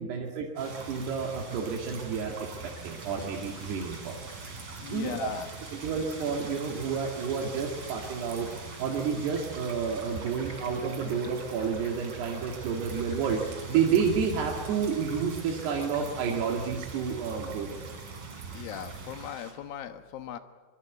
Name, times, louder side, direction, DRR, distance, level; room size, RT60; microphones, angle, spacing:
voice 1, 0.0-2.4 2.6-4.2 4.9-5.3 5.7-17.8, right 6 dB, 80° right, -1 dB, 4.2 m, -30 dB
sound 1, 0.6-19.5, right 3 dB, 30° right, 4.3 m, -46 dB
sound 2, 0.6-19.3, right 5 dB, 60° right, 3.3 m, -43 dB
voice 2, 4.8-5.5 18.5-20.4, left 9 dB, 70° left, 9 dB, 2.8 m, -38 dB
24.0 x 23.0 x 8.3 m, 1.5 s
omnidirectional pair, 4.7 m